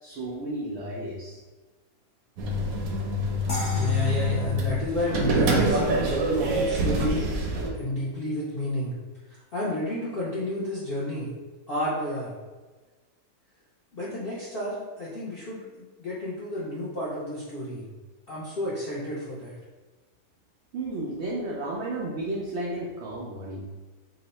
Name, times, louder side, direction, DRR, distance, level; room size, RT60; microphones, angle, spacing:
voice 1, 0.0-1.4 20.7-23.7, right 1 dB, 85° right, -4 dB, 0.6 m, -33 dB
sound 1, 2.4-7.7, equal, 70° right, 0.9 m, -26 dB
sound 2, 3.5-6.6, equal, 50° left, 1.0 m, -39 dB
voice 2, 3.7-7.3 7.7-9.0 9.3-11.3 11.7-12.3 13.9-17.9 18.3-19.5, left 1 dB, 65° left, -8 dB, 0.5 m, -31 dB
2.9 x 2.0 x 4.0 m, 1.3 s
omnidirectional pair, 1.7 m